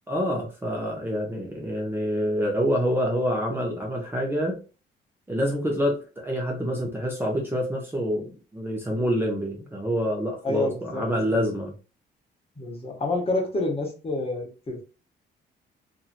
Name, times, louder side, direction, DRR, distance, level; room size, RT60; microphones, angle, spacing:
voice 1, 0.1-4.6 5.3-11.7, equal, 10° right, -1 dB, 0.8 m, -27 dB
voice 2, 10.4-11.4 12.6-14.8, left 2 dB, 30° left, 0 dB, 1.2 m, -28 dB
2.9 x 2.6 x 2.5 m, 0.33 s
cardioid pair, 90°, 20 cm